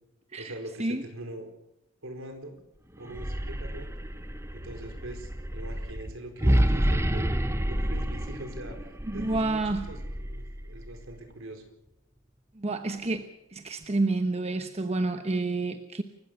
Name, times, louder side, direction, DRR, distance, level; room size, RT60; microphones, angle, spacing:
voice 1, 0.4-1.5 2.0-2.6 3.0-3.9 4.5-7.3 7.7-11.6, right 1 dB, 70° right, 5 dB, 4.5 m, -42 dB
sound 1, 3.0-11.1, equal, 15° right, 1.1 m, -29 dB
voice 2, 9.1-9.8 12.6-13.2 13.5-16.0, right 2 dB, 30° right, 7 dB, 1.1 m, -29 dB
29.0 x 15.5 x 6.7 m, 0.83 s
head